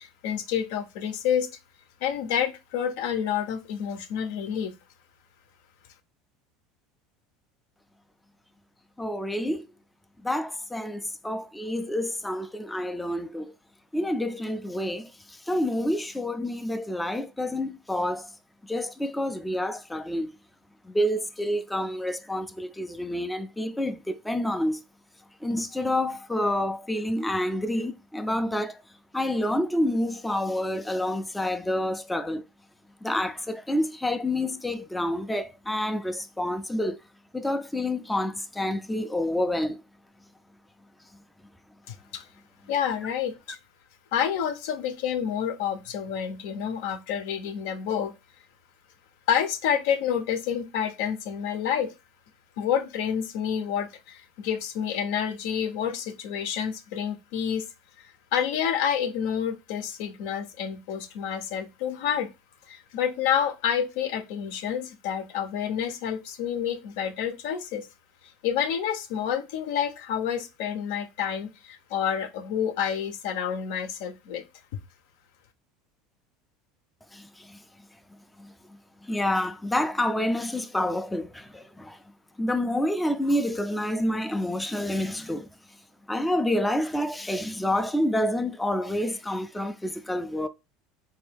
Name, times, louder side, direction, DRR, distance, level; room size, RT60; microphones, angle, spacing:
voice 1, 0.0-1.5 2.0-4.7 41.9-42.3 42.7-43.6 44.1-48.1 49.3-51.9 52.6-57.7 58.0-62.3 62.7-67.9 68.4-74.4, left 8 dB, 75° left, 0.6 m, -29 dB
voice 2, 9.0-9.7 10.2-13.5 13.9-18.3 18.6-20.3 20.8-24.8 25.4-28.8 29.1-32.4 33.0-37.0 37.3-39.8 77.1-77.6 78.4-78.5 79.0-82.0 82.4-85.5 86.1-90.5, left 1 dB, 5° left, 0.3 m, -28 dB
3.7 x 2.6 x 3.4 m
supercardioid pair, 120°, 0 cm